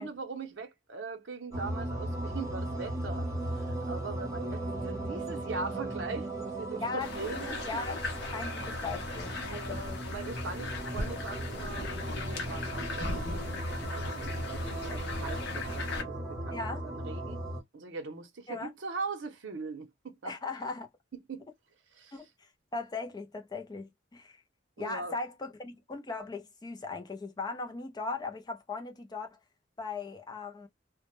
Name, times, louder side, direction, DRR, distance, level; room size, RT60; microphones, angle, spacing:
voice 1, 0.0-3.3 3.5-7.6 9.5-17.4 17.7-20.4 21.3-21.5 21.9-22.2 24.8-25.1, right 4 dB, 75° right, 0.6 m, -41 dB
sound 1, 1.5-17.6, right 1 dB, 20° right, 0.8 m, -37 dB
voice 2, 6.8-10.0 16.5-16.9 18.5-18.7 20.2-20.9 22.1-24.4 24.8-29.4 29.8-30.7, left 3 dB, 20° left, 0.4 m, -38 dB
sound 2, 7.0-16.0, left 2 dB, 60° left, 0.7 m, -38 dB
2.1 x 2.0 x 2.9 m
head